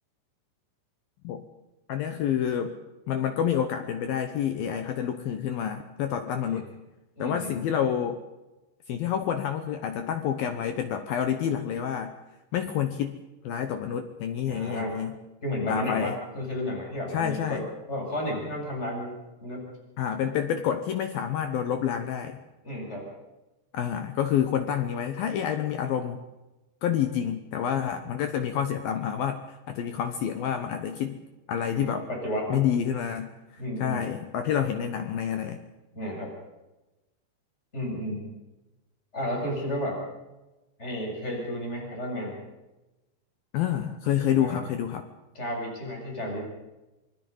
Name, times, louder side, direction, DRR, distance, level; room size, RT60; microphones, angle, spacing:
voice 1, 1.9-2.8 3.1-6.7 7.2-8.2 8.9-12.1 12.5-13.2 13.4-15.1 15.7-16.2 17.1-17.6 20.0-22.4 23.7-26.2 26.8-29.4 29.7-31.2 31.5-32.1 32.5-35.6 43.5-45.1, left 9 dB, 75° left, 8 dB, 2.2 m, -28 dB
voice 2, 7.2-7.6 14.5-14.9 15.4-17.6 17.9-19.1 19.4-19.7 22.6-23.1 31.7-32.6 33.6-34.0 35.9-36.3 37.7-38.2 39.1-40.0 40.8-42.4 44.3-44.6 45.3-46.5, equal, 15° left, 0 dB, 7.6 m, -32 dB
27.5 x 20.5 x 5.5 m, 1.0 s
omnidirectional pair, 5.7 m